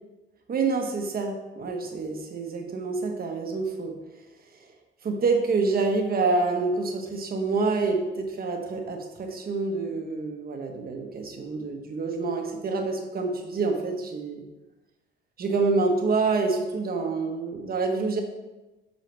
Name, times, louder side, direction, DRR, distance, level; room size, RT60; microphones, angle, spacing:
voice 1, 0.5-4.0 4.5-4.6 5.0-14.4 15.4-18.2, right 3 dB, 50° right, 3 dB, 1.3 m, -27 dB
8.0 x 5.6 x 3.4 m, 1.1 s
cardioid pair, 90°, 20 cm